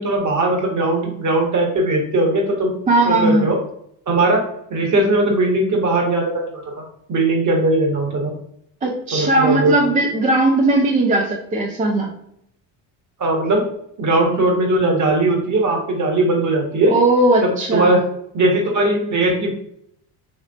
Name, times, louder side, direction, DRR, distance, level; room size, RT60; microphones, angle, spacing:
voice 1, 0.0-2.7 3.0-3.6 4.1-4.4 4.7-8.3 9.1-9.7 13.2-13.6 14.0-16.9 17.4-18.0 18.3-19.5, right 2 dB, 35° right, 0 dB, 1.2 m, -19 dB
voice 2, 2.9-3.5 8.8-12.1 16.9-18.0, right 2 dB, 15° right, 0 dB, 0.4 m, -18 dB
3.4 x 3.0 x 2.4 m, 0.70 s
supercardioid pair, 85°, 50 cm